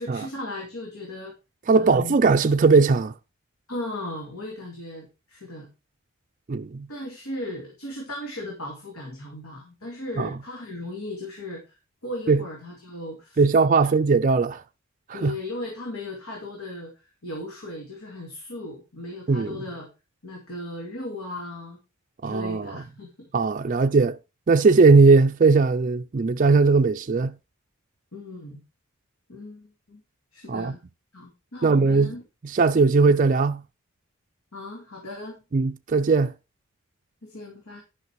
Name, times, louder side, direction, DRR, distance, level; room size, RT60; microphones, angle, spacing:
voice 1, 0.0-1.3 1.7-2.2 3.7-5.7 6.9-13.4 13.7-13.8 15.1-19.9 20.2-21.8 22.2-23.3 23.7-23.8 28.1-28.6 29.3-30.0 30.3-30.8 31.1-32.2 34.5-35.4 37.2-37.8, left 1 dB, 80° left, 2.4 m, -37 dB
voice 2, 1.7-3.1 6.5-6.9 10.2-10.3 12.3-12.4 13.4-14.6 15.1-15.3 19.3-19.6 22.2-22.7 23.3-24.2 24.5-27.3 30.5-30.7 31.6-32.1 32.5-33.6 35.5-36.3, right 4 dB, 35° right, 0.4 m, -19 dB
11.0 x 5.9 x 4.6 m
head